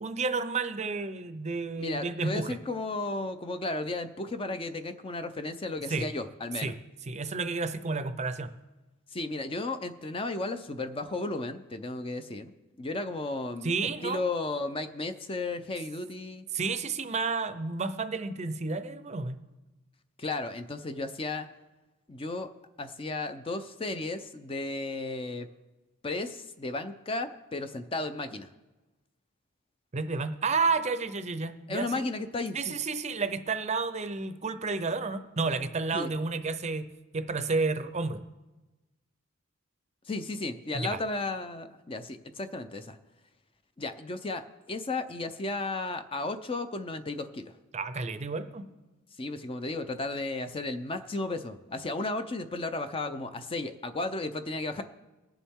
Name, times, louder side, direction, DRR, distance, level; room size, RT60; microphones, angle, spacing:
voice 1, 0.0-2.6 5.9-6.1 6.6-6.8 7.1-8.5 13.6-14.2 16.5-19.4 29.9-32.0 32.5-36.9 37.1-38.2 40.7-41.0 47.7-48.7, right 4 dB, 35° right, 10 dB, 0.6 m, -31 dB
voice 2, 1.8-6.7 9.1-12.5 12.8-13.7 14.0-16.5 20.2-21.5 22.1-22.5 22.8-25.5 26.0-28.5 31.7-32.7 35.9-36.1 40.1-43.0 43.8-47.6 49.2-54.8, left 2 dB, 25° left, 9 dB, 0.6 m, -34 dB
20.5 x 7.1 x 3.6 m, 1.1 s
head